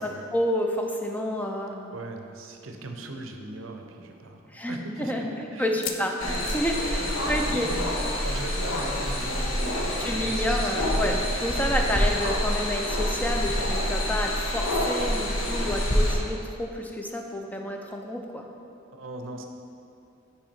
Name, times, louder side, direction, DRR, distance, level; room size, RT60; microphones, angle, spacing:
voice 1, 0.3-1.9 4.5-7.7 10.0-18.4, equal, 10° left, 2 dB, 0.4 m, -29 dB
voice 2, 1.9-5.8 7.0-7.9 8.2-11.0 11.6-11.8 18.9-19.4, right 2 dB, 75° right, 4 dB, 0.6 m, -39 dB
sound 1, 2.9-3.0 3.3-3.4 4.0-4.1 5.6-7.8 8.0-8.2 8.5-8.6 10.0-10.1, left 8 dB, 70° left, 0.4 m, -40 dB
sound 2, 6.2-16.1, equal, 90° left, 1.0 m, -27 dB
5.9 x 4.7 x 4.3 m, 2.6 s
head